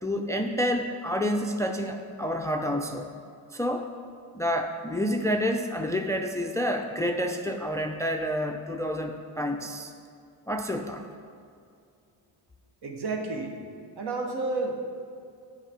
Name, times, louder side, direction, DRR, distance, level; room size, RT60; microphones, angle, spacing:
voice 1, 0.0-3.1 3.5-3.9 4.3-9.9 10.5-11.0, equal, 5° left, 5 dB, 0.4 m, -29 dB
voice 2, 12.8-13.6 14.0-14.8, right 3 dB, 60° right, 3 dB, 1.3 m, -31 dB
8.2 x 4.9 x 5.0 m, 2.4 s
supercardioid pair, 60°, 44 cm